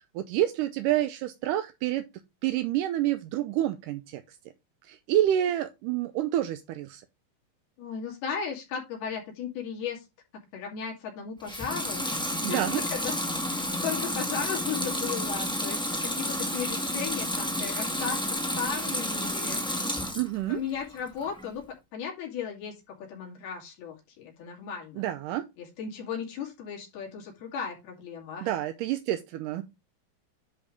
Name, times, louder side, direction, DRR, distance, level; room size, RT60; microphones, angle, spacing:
voice 1, 0.2-2.1 2.4-4.4 4.8-7.0 12.4-12.8 20.1-20.6 25.0-25.5 28.4-29.6, right 12 dB, 80° right, 2.0 m, -28 dB
voice 2, 7.8-10.0 10.5-12.1 12.5-13.1 13.5-19.6 20.5-21.6 21.9-25.1 25.6-28.5, left 7 dB, 85° left, 4.4 m, -36 dB
Water tap faucet / Sink (filling or washing) / Liquid, 11.4-20.3 20.7-21.5, left 1 dB, 5° left, 0.3 m, -30 dB
10.5 x 3.6 x 5.2 m
omnidirectional pair, 4.3 m